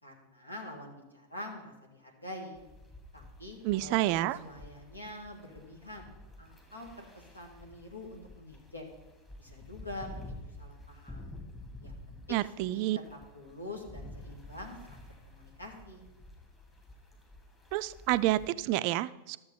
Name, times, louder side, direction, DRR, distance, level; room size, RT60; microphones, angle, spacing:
voice 1, 0.0-2.6 3.1-6.1 6.4-8.9 9.4-11.3 11.8-14.8 15.1-16.0, left 1 dB, 80° left, 1 dB, 2.0 m, -46 dB
sound 1, 2.5-18.5, left 1 dB, 15° left, 2.4 m, -50 dB
voice 2, 3.6-4.4 12.3-13.0 17.7-19.4, right 16 dB, 45° right, 15 dB, 0.3 m, -29 dB
12.0 x 7.1 x 5.3 m, 1.1 s
figure-of-eight pair, 90°, 0 cm